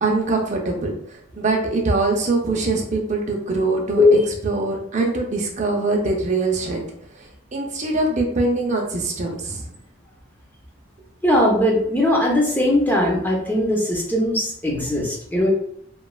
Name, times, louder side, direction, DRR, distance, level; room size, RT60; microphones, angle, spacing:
voice 1, 0.0-0.9 1.4-6.8 7.2-9.7, right 3 dB, 35° right, 1 dB, 0.5 m, -23 dB
voice 2, 11.2-15.5, left 1 dB, 10° left, -2 dB, 0.6 m, -19 dB
3.0 x 2.3 x 2.3 m, 0.67 s
head